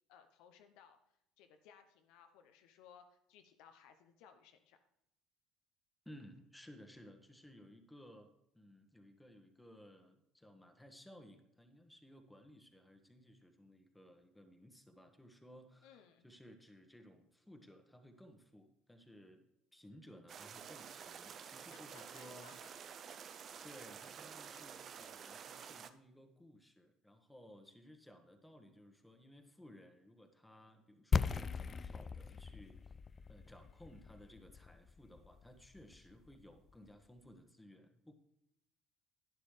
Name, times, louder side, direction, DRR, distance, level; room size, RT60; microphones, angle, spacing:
voice 1, 0.1-1.0 1.4-4.8 15.8-16.3 21.7-22.7 23.1-23.3, left 8 dB, 70° left, 7 dB, 0.8 m, -62 dB
voice 2, 6.0-19.4 19.7-22.6 23.2-32.9 33.3-38.1, equal, 5° left, 5 dB, 1.4 m, -58 dB
sound 1, 20.3-25.9, right 7 dB, 45° right, 0.6 m, -51 dB
sound 2, 31.1-36.9, left 5 dB, 35° left, 0.3 m, -39 dB
11.5 x 9.7 x 3.3 m, 0.77 s
hypercardioid pair, 65°, 0 cm